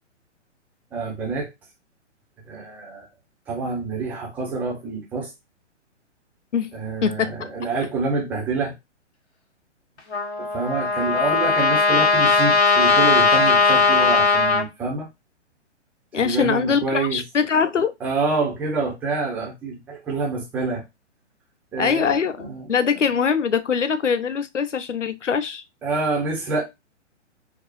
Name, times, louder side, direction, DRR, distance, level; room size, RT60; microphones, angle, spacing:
voice 1, 0.9-1.5 2.5-3.1 3.5-5.3 6.7-8.7 10.4-15.1 16.2-17.2 18.0-20.8 21.7-22.7 25.8-26.6, right 3 dB, 5° right, 0.5 m, -27 dB
voice 2, 7.0-7.5 16.1-17.9 21.8-25.6, left 6 dB, 80° left, 0.6 m, -23 dB
Trumpet, 10.1-14.6, left 4 dB, 60° left, 1.4 m, -18 dB
5.1 x 2.0 x 2.7 m
figure-of-eight pair, 125°, 36 cm